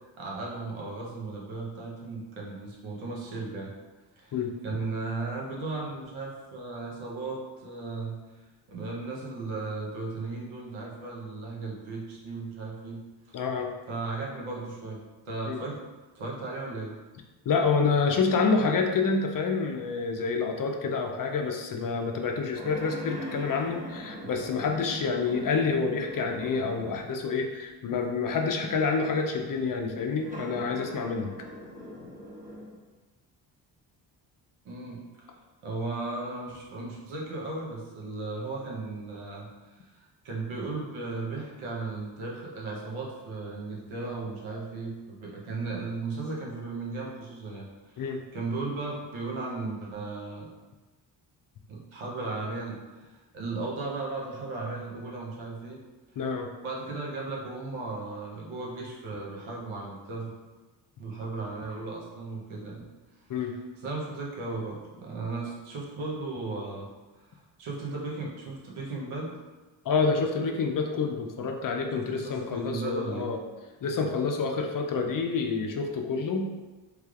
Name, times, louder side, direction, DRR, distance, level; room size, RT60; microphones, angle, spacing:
voice 1, 0.2-3.7 4.2-4.4 4.6-8.2 8.7-13.0 13.3-13.4 13.9-15.8 16.1-16.9 34.6-35.3 35.6-47.7 47.9-48.1 48.3-50.4 51.7-53.1 53.3-55.8 56.6-60.3 61.0-62.9 63.8-66.9 67.6-69.3 71.9-73.3, right 3 dB, 80° right, -3 dB, 0.9 m, -36 dB
voice 2, 13.3-13.7 15.5-15.6 17.5-31.3 48.0-48.2 56.2-56.5 63.3-63.5 69.8-73.4 73.8-76.5, left 4 dB, 45° left, 3 dB, 0.5 m, -28 dB
sound 1, 22.5-27.2 27.9-28.0 30.1-32.8, equal, 15° right, 1.0 m, -41 dB
3.2 x 3.1 x 2.4 m, 1.2 s
cardioid pair, 60°, 48 cm